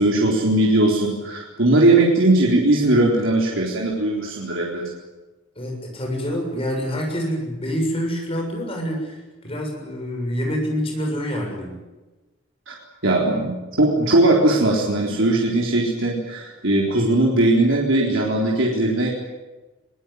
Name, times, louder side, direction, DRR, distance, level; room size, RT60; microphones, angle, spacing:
voice 1, 0.0-4.8 12.7-12.8 13.0-19.1, right 2 dB, 70° right, -2 dB, 3.9 m, -19 dB
voice 2, 5.6-11.8, equal, 25° left, 1 dB, 7.0 m, -26 dB
22.0 x 20.0 x 9.4 m, 1.1 s
head